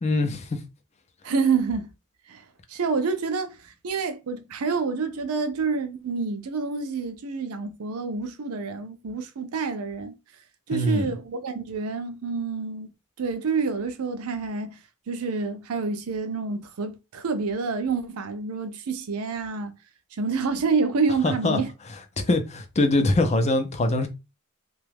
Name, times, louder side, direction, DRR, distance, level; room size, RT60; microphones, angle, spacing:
voice 1, 0.0-0.6 10.7-11.1 21.2-21.6 22.2-24.1, left 2 dB, 30° left, 0.5 m, -23 dB
voice 2, 1.2-1.9 2.3-2.4 2.7-10.1 10.7-12.9 13.2-14.8 15.1-19.7 20.1-21.7, right 4 dB, 80° right, 0.5 m, -28 dB
2.8 x 2.3 x 3.3 m
head